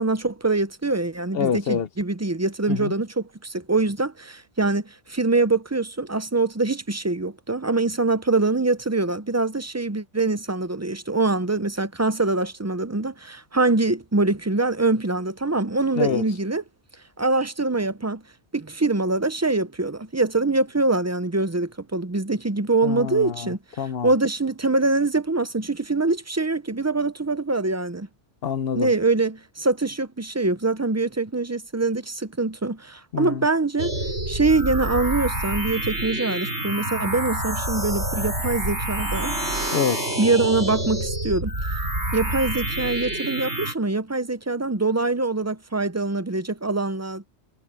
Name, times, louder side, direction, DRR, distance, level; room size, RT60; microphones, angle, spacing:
voice 1, 0.0-16.6 17.2-18.2 18.5-23.6 24.0-28.1 28.7-33.9 34.3-39.3 40.2-41.5 42.1-47.3, right 3 dB, 20° right, 0.5 m, -24 dB
voice 2, 1.3-1.9 2.7-2.9 15.9-16.2 22.8-24.1 28.4-28.9 33.1-33.4 39.7-40.1, left 7 dB, 60° left, 1.0 m, -26 dB
sound 1, 33.8-43.7, right 1 dB, 70° right, 6.7 m, -27 dB
omnidirectional pair, 1.2 m